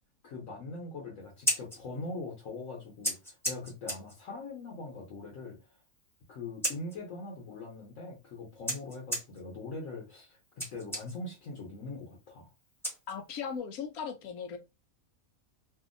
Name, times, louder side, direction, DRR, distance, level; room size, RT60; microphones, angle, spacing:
voice 1, 0.2-5.7 6.3-12.5, left 3 dB, 65° left, 1.2 m, -42 dB
Scissors, 1.2-13.6, equal, ahead, 0.8 m, -40 dB
voice 2, 13.1-14.6, left 6 dB, 85° left, 1.1 m, -38 dB
2.7 x 2.6 x 2.5 m
omnidirectional pair, 1.5 m